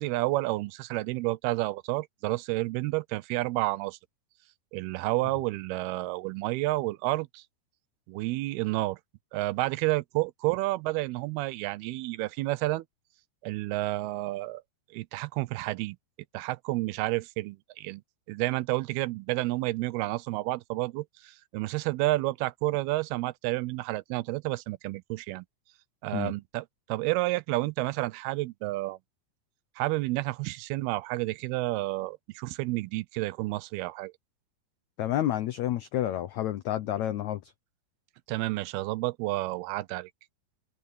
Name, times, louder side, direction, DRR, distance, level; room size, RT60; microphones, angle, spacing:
voice 1, 0.0-4.0 4.7-7.4 8.1-9.0 9.3-12.8 13.4-14.6 14.9-16.0 16.3-18.0 18.3-25.5 26.0-29.0 29.8-34.1 38.3-40.1, right 20 dB, 90° right, 2.7 m, -30 dB
voice 2, 35.0-37.5, left 12 dB, 85° left, 1.6 m, -29 dB
omnidirectional pair, 4.4 m